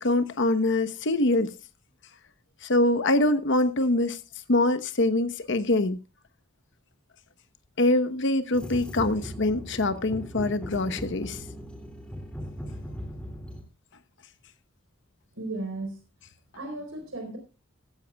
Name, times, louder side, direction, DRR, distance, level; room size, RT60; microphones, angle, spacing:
voice 1, 0.0-1.5 2.6-4.2 4.5-6.0 7.8-11.4, left 2 dB, 60° left, 1.0 m, -24 dB
sound 1, 8.5-13.6, equal, 5° left, 2.5 m, -38 dB
voice 2, 15.4-16.0 16.5-17.4, right 2 dB, 70° right, 4.3 m, -35 dB
15.0 x 15.0 x 2.3 m
head